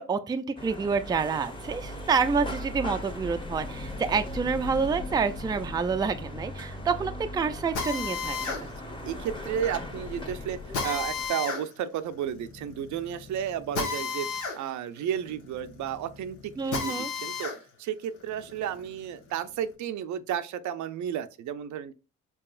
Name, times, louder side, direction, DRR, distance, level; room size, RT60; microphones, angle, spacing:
voice 1, 0.0-8.7 16.6-17.1, right 5 dB, 15° right, 0.3 m, -28 dB
sound 1, 0.6-11.3, left 1 dB, 15° left, 0.9 m, -38 dB
Drill, 7.7-17.6 18.0-19.6, left 5 dB, 85° left, 1.3 m, -35 dB
voice 2, 9.1-14.3 14.5-17.5 17.8-21.9, right 9 dB, 70° right, 0.5 m, -33 dB
4.7 x 2.9 x 2.4 m
cardioid pair, 90°, 30 cm